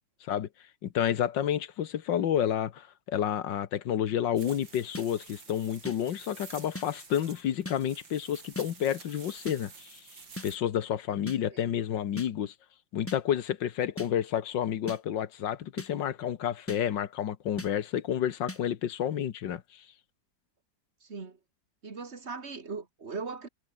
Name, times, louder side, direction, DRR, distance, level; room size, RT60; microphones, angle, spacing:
voice 1, 0.8-10.0 10.4-12.5 12.9-19.8, left 10 dB, 75° left, 1.8 m, -30 dB
sound 1, 4.4-10.6, right 5 dB, 85° right, 4.1 m, -50 dB
sound 2, 4.9-5.1 5.8-6.0 6.7-6.9 7.6-7.8 8.5-8.7 9.5-9.6 10.4-10.5 11.3-11.4 12.2-12.3 13.1-13.2 14.0-14.1 14.9-15.0 15.8-15.9 16.7-16.8 17.6-17.7 18.5-18.6, left 1 dB, 10° left, 0.9 m, -38 dB
voice 2, 21.0-21.4 21.8-23.5, right 4 dB, 35° right, 2.3 m, -39 dB
omnidirectional pair, 2.0 m